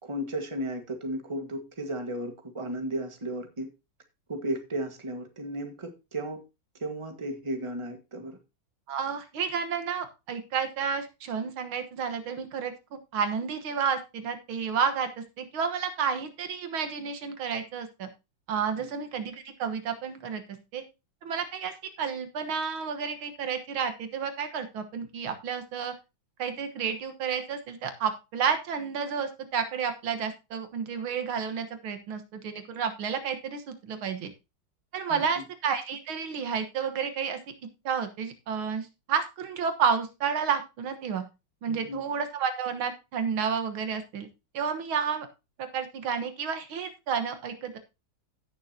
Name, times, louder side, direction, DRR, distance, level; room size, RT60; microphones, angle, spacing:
voice 1, 0.0-3.7 4.3-6.4 6.8-8.4 18.8-18.9 35.1-35.4 41.7-42.0, right 1 dB, 15° right, 5 dB, 1.5 m, -34 dB
voice 2, 8.9-18.1 18.5-20.4 20.7-20.8 21.2-21.7 22.0-25.9 26.4-34.3 34.9-37.4 37.9-41.2 41.6-44.3 44.5-45.3 45.6-47.8, right 6 dB, 90° right, 8 dB, 2.1 m, -31 dB
16.0 x 6.7 x 2.8 m, 0.26 s
omnidirectional pair, 2.2 m